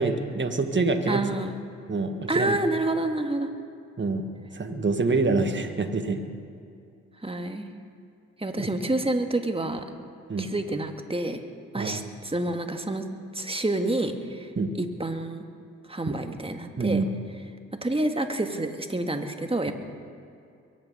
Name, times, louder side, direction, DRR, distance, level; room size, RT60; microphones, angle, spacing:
voice 1, 0.0-1.2 1.9-2.6 4.0-4.2 4.5-6.2 8.6-8.7 10.3-10.5 11.8-12.0 14.6-14.7 16.1-16.2 16.8-17.1, right 3 dB, 35° right, 6 dB, 1.8 m, -26 dB
voice 2, 1.1-1.6 2.3-3.5 7.2-7.7 8.4-9.9 10.4-11.4 11.7-13.0 13.3-14.5 14.8-15.4 15.9-17.0 17.8-19.7, right 2 dB, 15° right, 5 dB, 1.9 m, -28 dB
23.0 x 9.2 x 5.6 m, 2.5 s
hypercardioid pair, 40°, 34 cm